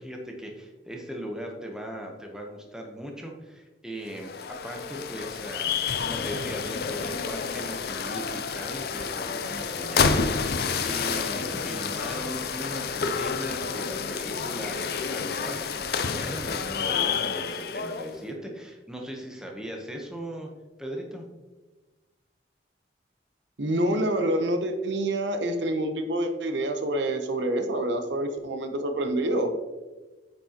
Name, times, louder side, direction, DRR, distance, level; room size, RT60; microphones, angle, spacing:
voice 1, 0.0-20.5 20.8-21.3, equal, 5° right, 1 dB, 0.8 m, -38 dB
sound 1, 4.1-18.2, left 5 dB, 55° left, 0.5 m, -29 dB
voice 2, 23.6-29.5, right 1 dB, 75° right, 7 dB, 0.8 m, -27 dB
8.8 x 6.1 x 2.9 m, 1.2 s
head